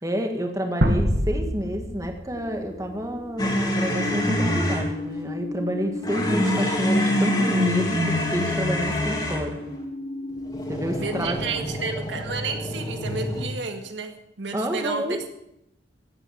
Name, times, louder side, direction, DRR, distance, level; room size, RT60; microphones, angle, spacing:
voice 1, 0.0-9.6 10.7-11.7 14.5-15.2, equal, 15° right, 4 dB, 1.7 m, -29 dB
sound 1, 0.8-3.7, equal, 60° right, 2.1 m, -26 dB
sound 2, 2.3-13.2, left 3 dB, 50° left, 4.3 m, -36 dB
sound 3, 3.4-4.9 6.0-9.5 10.5-13.5, left 1 dB, 20° left, 3.0 m, -25 dB
voice 2, 11.0-15.3, right 4 dB, 80° right, 5 dB, 1.9 m, -31 dB
16.0 x 9.2 x 8.0 m, 0.80 s
head